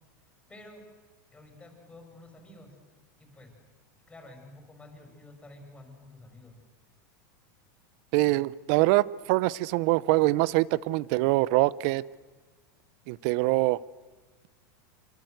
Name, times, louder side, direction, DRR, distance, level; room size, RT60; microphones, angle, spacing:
voice 1, 0.2-0.9 1.3-2.8 3.2-3.6 4.1-6.6, left 2 dB, 10° left, 3 dB, 5.8 m, -50 dB
voice 2, 8.1-12.0 13.1-13.8, right 19 dB, 55° right, 22 dB, 0.7 m, -24 dB
26.0 x 24.5 x 8.0 m, 1.4 s
supercardioid pair, 145°, 10 cm